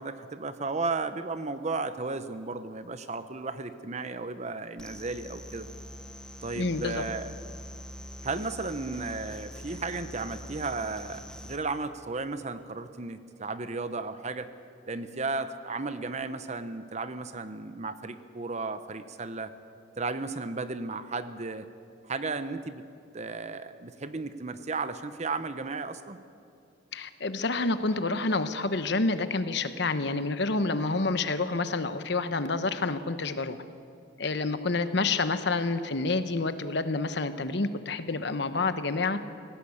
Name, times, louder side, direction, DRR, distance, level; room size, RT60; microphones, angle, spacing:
voice 1, 0.0-5.7 6.4-7.3 8.2-14.5 14.9-19.5 20.0-21.7 22.0-22.8 23.1-26.2, right 3 dB, 35° right, 11 dB, 0.9 m, -34 dB
sound 1, 4.8-11.6, equal, 5° left, 1.0 m, -44 dB
voice 2, 6.5-7.0 26.9-33.6 34.2-39.2, left 3 dB, 60° left, 11 dB, 1.0 m, -28 dB
18.5 x 16.5 x 8.4 m, 2.5 s
head